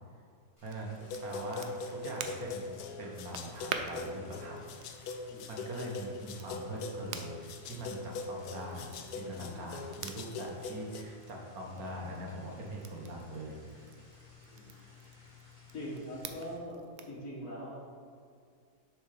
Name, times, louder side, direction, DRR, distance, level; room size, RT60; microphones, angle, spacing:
sound 1, 0.6-16.5, left 5 dB, 20° left, 1.8 m, -56 dB
voice 1, 0.6-2.7 3.0-4.7 5.5-13.6, right 1 dB, 65° right, -1 dB, 1.5 m, -42 dB
Crackle, 0.6-17.2, right 6 dB, 80° right, 0.6 m, -48 dB
sound 2, 1.0-11.0, left 3 dB, 75° left, 1.1 m, -42 dB
voice 2, 15.7-16.8 17.1-17.8, equal, 55° left, -4 dB, 1.7 m, -42 dB
6.7 x 4.5 x 4.8 m, 2.2 s
omnidirectional pair, 1.7 m